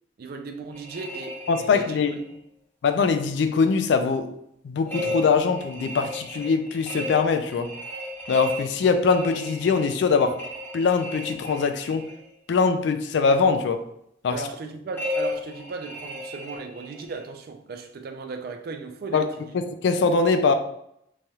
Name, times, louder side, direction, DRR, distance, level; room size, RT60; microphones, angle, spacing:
voice 1, 0.2-2.4 14.3-19.5, right 4 dB, 55° right, 0.4 m, -37 dB
sound 1, 0.7-2.3 4.9-12.2 14.9-17.2, left 1 dB, 10° left, 0.7 m, -34 dB
voice 2, 1.5-2.1 2.8-4.3 4.6-7.7 8.3-10.4 10.7-12.1 12.5-13.8 14.2-14.4 19.1-19.2 19.5-20.5, left 5 dB, 70° left, 0.3 m, -22 dB
3.1 x 2.3 x 2.7 m
head